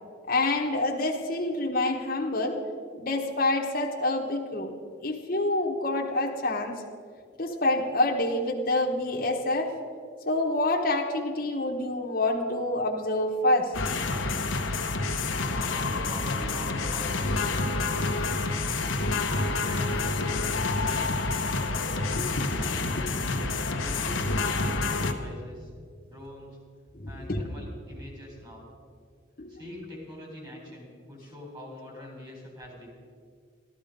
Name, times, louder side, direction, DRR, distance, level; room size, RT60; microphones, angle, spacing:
voice 1, 0.3-2.6 3.0-4.8 5.0-6.7 7.4-9.7 10.3-13.7 22.4-23.5 26.9-27.4 29.4-29.5, left 2 dB, 45° left, 0 dB, 1.1 m, -27 dB
sound 1, 13.7-25.1, left 3 dB, 80° left, 0.9 m, -28 dB
voice 2, 15.3-18.8 19.0-23.2 23.8-25.7 26.0-26.6 27.1-28.7 29.5-32.9, left 1 dB, 20° right, -2 dB, 3.8 m, -44 dB
13.0 x 12.5 x 5.2 m, 2.1 s
head